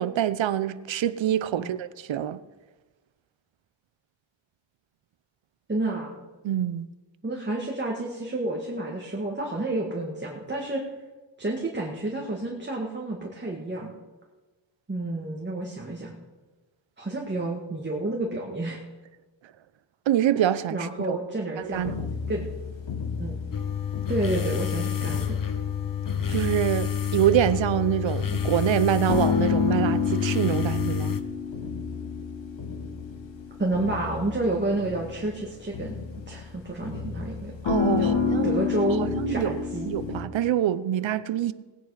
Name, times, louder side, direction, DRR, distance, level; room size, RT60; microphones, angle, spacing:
voice 1, 0.0-2.4 6.4-6.9 20.1-21.2 21.6-21.9 26.3-31.2 37.6-38.5 39.2-41.5, right 11 dB, 85° right, 0.7 m, -25 dB
voice 2, 5.7-6.2 7.2-10.8 11.4-13.9 14.9-16.2 17.0-18.8 20.7-22.0 22.3-22.5 23.2-23.4 24.1-25.4 33.6-36.0 36.3-37.6 38.0-38.1 38.4-39.9, right 2 dB, 25° right, 1.8 m, -30 dB
sound 1, 21.7-40.2, left 6 dB, 85° left, 1.6 m, -30 dB
sound 2, 23.5-31.2, left 9 dB, 50° left, 1.0 m, -29 dB
19.0 x 9.3 x 4.9 m
wide cardioid pair, 85°, 44 cm